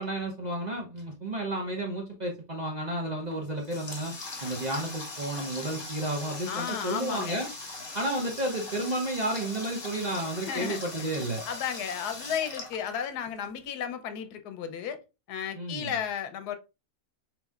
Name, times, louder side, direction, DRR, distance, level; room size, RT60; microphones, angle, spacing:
voice 1, 0.0-4.1 4.4-7.5 7.9-11.4 15.6-15.9, right 1 dB, 40° right, 0.7 m, -32 dB
Water tap faucet, 3.3-13.5, left 2 dB, 25° left, 0.6 m, -40 dB
voice 2, 6.5-7.4 10.4-11.1 11.5-15.0 15.3-16.6, left 8 dB, 85° left, 1.2 m, -34 dB
4.2 x 4.0 x 2.3 m
omnidirectional pair, 1.6 m